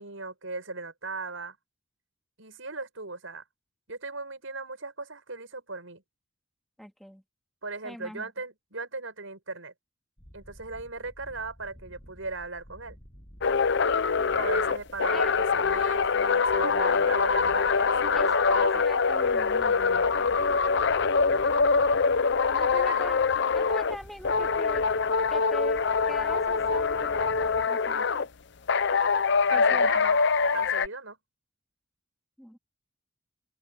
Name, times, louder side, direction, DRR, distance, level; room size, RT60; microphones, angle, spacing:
voice 1, 0.0-1.6 2.4-3.4 3.9-6.0 7.6-9.7 10.3-13.0 14.3-18.8 22.8-23.1 29.5-30.2 30.5-31.2, right 3 dB, 75° right, 6.8 m, -38 dB
voice 2, 6.8-7.2 7.8-8.3 15.1-15.4 16.6-17.0 18.1-20.4 22.5-24.9 25.3-28.1 29.5-30.1 32.4-32.6, equal, ahead, 2.4 m, -42 dB
sound 1, 10.2-27.7, equal, 25° left, 7.5 m, -50 dB
sound 2, 13.4-24.0 24.2-28.3 28.7-30.9, left 5 dB, 60° left, 0.6 m, -24 dB
open air
head